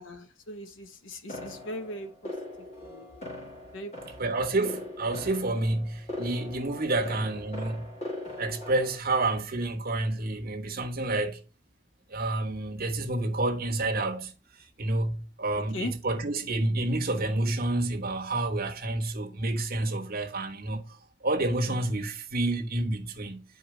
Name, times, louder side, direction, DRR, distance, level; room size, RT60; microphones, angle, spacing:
voice 1, 0.0-2.3 2.8-3.1 3.7-4.4 6.9-7.2 15.5-15.9, left 1 dB, 70° left, 1.1 m, -40 dB
sound 1, 1.3-9.0, left 1 dB, 35° left, 2.1 m, -41 dB
voice 2, 4.2-7.9 8.4-11.4 12.1-23.4, right 2 dB, 50° right, 1.3 m, -29 dB
10.0 x 4.6 x 3.3 m
head